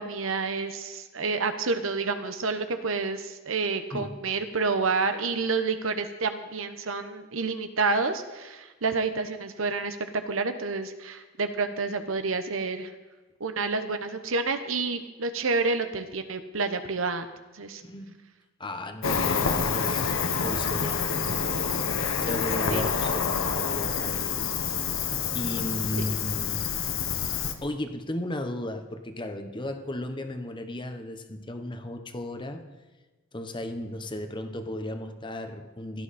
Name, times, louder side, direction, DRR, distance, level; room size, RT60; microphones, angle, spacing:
voice 1, 0.0-10.0 10.3-12.9 13.4-17.3 17.5-17.8 22.7-22.9, right 4 dB, 80° right, 8 dB, 1.0 m, -29 dB
voice 2, 17.8-18.2 18.6-21.7 22.2-24.4 25.3-26.7 27.6-32.7 33.3-36.0, left 1 dB, 25° left, 7 dB, 1.0 m, -35 dB
Cricket, 19.0-27.5, left 6 dB, 90° left, 1.1 m, -27 dB
16.0 x 12.0 x 4.3 m, 1.2 s
head